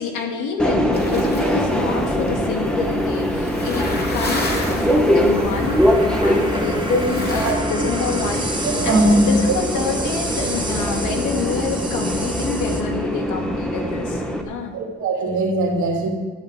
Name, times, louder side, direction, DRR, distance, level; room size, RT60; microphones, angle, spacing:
voice 1, 0.0-14.7, left 4 dB, 80° left, 2 dB, 2.5 m, -27 dB
Subway metro underground, 0.6-14.4, equal, 5° left, 1.6 m, -22 dB
sound 1, 0.9-7.5, left 2 dB, 30° left, 2.8 m, -33 dB
sound 2, 2.8-12.8, right 1 dB, 15° right, 2.0 m, -31 dB
voice 2, 8.6-9.5 14.7-16.1, right 1 dB, 70° right, -1 dB, 3.5 m, -19 dB
13.0 x 6.8 x 9.2 m, 1.4 s
cardioid pair, 90°, 30 cm